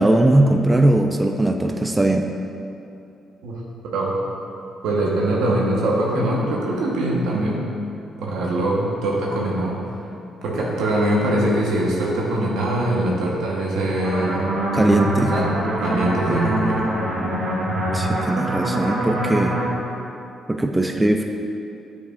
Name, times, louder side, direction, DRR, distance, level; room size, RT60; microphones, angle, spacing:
voice 1, 0.0-2.2 14.7-15.3 17.9-19.6 20.5-21.2, right 1 dB, 10° right, 4 dB, 0.3 m, -19 dB
voice 2, 4.8-7.6 8.2-9.8 10.4-14.4 15.3-15.5 15.8-16.8, right 1 dB, 85° right, -3 dB, 1.1 m, -22 dB
sound 1, 14.0-19.7, right 1 dB, 65° right, 1.3 m, -24 dB
8.1 x 4.7 x 2.5 m, 2.6 s
cardioid pair, 90°, 0 cm